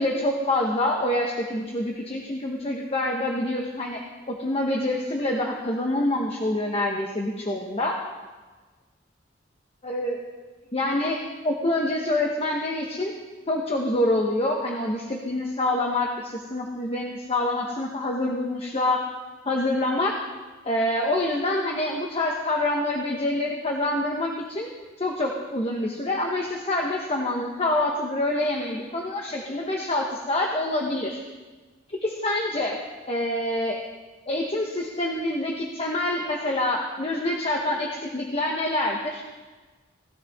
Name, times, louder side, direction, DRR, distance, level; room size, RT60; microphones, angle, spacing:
voice 1, 0.0-4.0 4.3-7.9 9.8-10.2 10.7-11.2 11.4-13.1 13.5-19.0 19.4-20.1 20.6-24.7 25.0-31.2 32.0-32.7 33.1-33.8 34.3-39.2, left 1 dB, 30° left, 0 dB, 1.0 m, -26 dB
16.0 x 12.5 x 3.6 m, 1.3 s
head